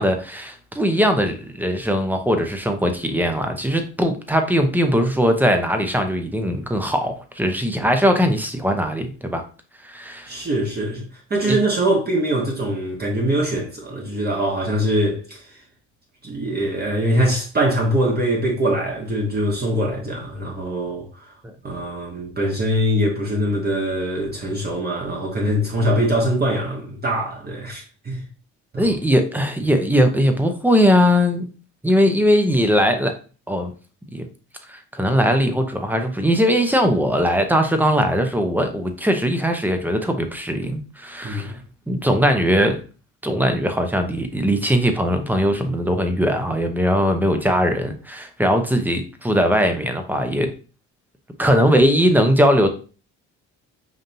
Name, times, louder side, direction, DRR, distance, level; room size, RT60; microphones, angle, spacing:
voice 1, 0.0-9.4 9.8-10.3 11.4-11.6 21.4-21.5 28.8-31.5 31.8-33.1 33.5-33.7 34.1-34.3 34.7-41.5 41.9-42.8 43.2-50.5 51.4-52.7, equal, 5° right, 0.7 m, -20 dB
voice 2, 10.3-15.4 16.2-21.3 21.6-28.2 28.7-28.8 41.2-41.6, right 1 dB, 30° right, 1.1 m, -23 dB
5.2 x 2.7 x 2.6 m
cardioid pair, 85°, 30 cm